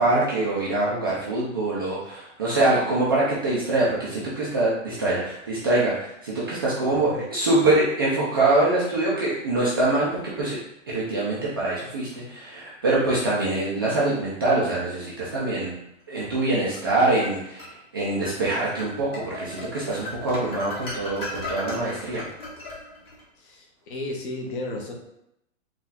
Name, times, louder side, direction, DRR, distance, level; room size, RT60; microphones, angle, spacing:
voice 1, 0.0-10.6 10.9-15.8 16.1-22.2, right 2 dB, 20° right, -8 dB, 0.3 m, -24 dB
sound 1, 16.4-17.7 18.2-18.4 18.8-23.2, left 2 dB, 15° left, 0.8 m, -37 dB
voice 2, 23.4-24.9, left 2 dB, 45° left, 1 dB, 0.9 m, -33 dB
4.0 x 2.4 x 3.9 m, 0.80 s
hypercardioid pair, 150°, 38 cm